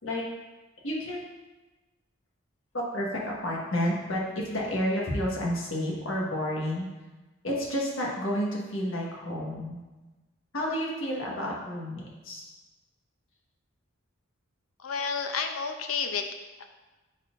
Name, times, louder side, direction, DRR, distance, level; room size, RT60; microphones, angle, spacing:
voice 1, 0.8-1.3 2.7-6.9 7.4-9.8 10.5-12.5, equal, 70° left, -3 dB, 1.4 m, -30 dB
voice 2, 14.8-16.2 16.6-16.7, left 5 dB, 90° left, 6 dB, 0.6 m, -30 dB
10.0 x 4.2 x 2.5 m, 1.2 s
head